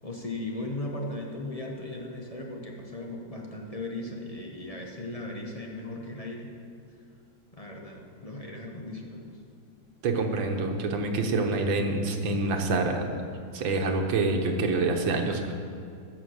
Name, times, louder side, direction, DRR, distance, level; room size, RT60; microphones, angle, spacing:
voice 1, 0.0-6.5 7.5-9.4, left 2 dB, 20° left, -1 dB, 1.1 m, -37 dB
voice 2, 10.0-13.1 13.5-15.5, right 3 dB, 85° right, 4 dB, 1.8 m, -26 dB
15.0 x 6.2 x 6.5 m, 2.3 s
omnidirectional pair, 2.0 m